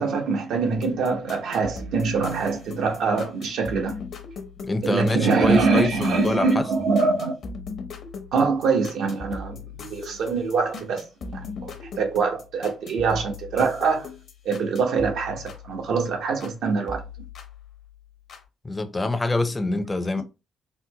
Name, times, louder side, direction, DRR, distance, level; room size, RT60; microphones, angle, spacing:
voice 1, 0.0-4.0 4.8-7.4 8.3-9.6 9.9-14.1 14.4-17.0, right 4 dB, 75° right, 0.8 m, -24 dB
sound 1, 0.8-16.6 16.9-18.4, left 4 dB, 60° left, 0.8 m, -39 dB
voice 2, 4.6-6.6 18.6-20.2, left 2 dB, 20° left, 0.5 m, -25 dB
4.1 x 2.0 x 2.8 m
cardioid pair, 90°, 0 cm